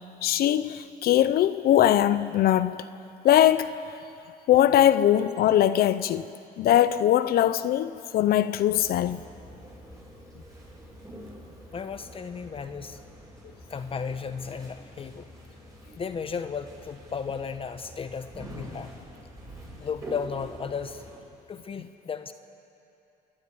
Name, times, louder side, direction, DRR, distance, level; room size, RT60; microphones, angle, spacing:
voice 1, 0.2-2.8 3.2-3.8 4.5-6.2 6.6-9.2, left 11 dB, 65° left, 0.6 m, -21 dB
sound 1, 8.7-21.2, equal, 20° right, 7.1 m, -46 dB
voice 2, 11.7-13.0 13.7-15.3 16.0-18.9 19.8-21.0 21.5-22.3, left 6 dB, 35° left, 0.9 m, -34 dB
28.5 x 11.5 x 9.7 m
cardioid pair, 110°, 17 cm